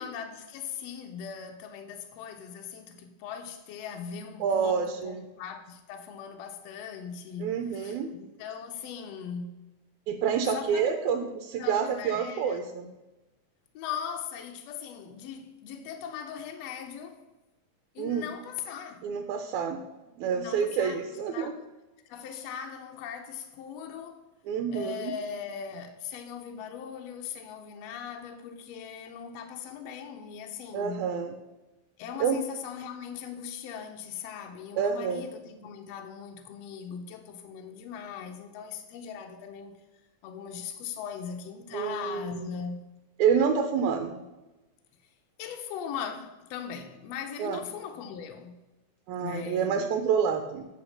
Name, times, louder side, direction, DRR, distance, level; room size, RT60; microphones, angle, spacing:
voice 1, 0.0-9.6 10.4-10.9 11.6-12.6 13.7-17.2 17.9-19.1 20.3-21.6 22.0-24.2 24.7-31.1 32.0-39.8 40.2-42.9 45.0-45.1 45.4-48.6 49.2-50.0, left 7 dB, 75° left, 1.6 m, -39 dB
voice 2, 4.4-5.2 7.4-8.1 10.1-12.9 18.0-18.2 19.0-19.8 20.2-21.5 24.5-25.1 30.7-31.3 32.2-32.4 34.8-35.2 41.7-42.5 43.2-44.2 47.4-47.6 49.1-50.7, right 7 dB, 80° right, 2.0 m, -28 dB
8.6 x 4.3 x 6.3 m
omnidirectional pair, 3.5 m